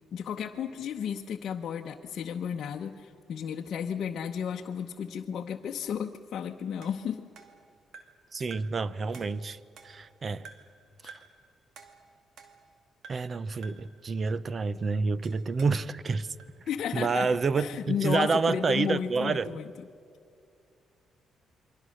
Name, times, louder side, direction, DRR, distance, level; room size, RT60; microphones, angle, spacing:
voice 1, 0.1-7.2 16.7-19.7, left 7 dB, 65° left, 2 dB, 0.9 m, -33 dB
sound 1, 6.8-8.3 8.5-8.8 9.1-10.1 10.4-10.8 11.1-11.4 11.8-12.8 13.0-13.4 13.6-13.9 15.2-15.8 16.1-17.6, right 5 dB, 65° right, 2.2 m, -52 dB
voice 2, 8.3-9.6 9.8-10.5 11.0-11.2 13.1-16.3 16.9-19.5, right 4 dB, 40° right, 17 dB, 0.7 m, -28 dB
29.0 x 23.0 x 6.5 m, 2.4 s
cardioid pair, 90°, 0 cm